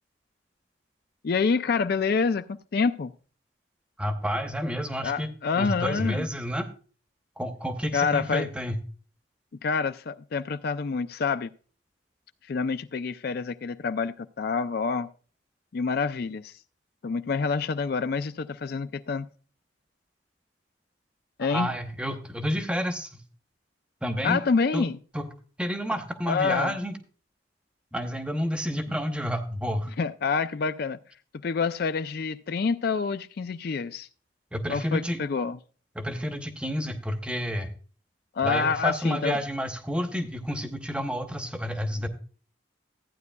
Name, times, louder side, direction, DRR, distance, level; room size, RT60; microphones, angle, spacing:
voice 1, 1.2-2.5 2.7-3.1 5.0-6.3 7.9-8.5 9.6-11.5 12.4-15.1 15.7-16.6 17.0-19.3 21.4-21.7 24.2-25.0 26.3-26.8 30.0-31.0 31.4-34.1 34.7-35.6 38.3-39.4, left 5 dB, 50° left, 12 dB, 0.4 m, -27 dB
voice 2, 4.0-6.7 7.4-8.8 21.5-23.2 24.0-24.4 24.7-24.8 25.1-25.3 25.6-27.0 27.9-29.9 34.5-35.2 35.9-37.7 38.4-42.1, equal, 5° right, 6 dB, 0.9 m, -30 dB
14.5 x 9.4 x 2.2 m, 0.39 s
head